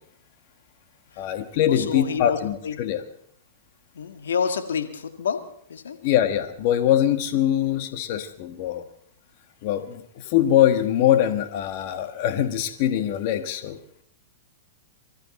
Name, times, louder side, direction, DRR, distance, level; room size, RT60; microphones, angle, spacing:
voice 1, 1.2-3.0 6.0-8.8 9.6-13.8, left 11 dB, 50° left, 7 dB, 1.4 m, -23 dB
voice 2, 1.7-2.4 2.6-2.7 4.0-5.4 5.7-6.0, left 6 dB, 85° left, 6 dB, 1.7 m, -28 dB
24.5 x 13.5 x 4.2 m, 0.66 s
hypercardioid pair, 125°, 0 cm